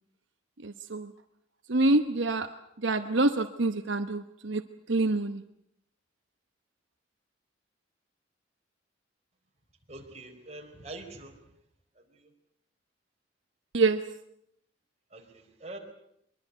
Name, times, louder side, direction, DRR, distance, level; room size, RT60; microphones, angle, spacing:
voice 1, 0.6-1.1 1.7-2.5 2.8-4.6 4.9-5.4 13.7-14.0, right 2 dB, 75° right, 8 dB, 1.1 m, -26 dB
voice 2, 9.9-11.4 11.9-12.3 15.1-15.8, right 2 dB, 35° right, 2 dB, 4.3 m, -45 dB
23.0 x 22.5 x 8.1 m, 0.74 s
head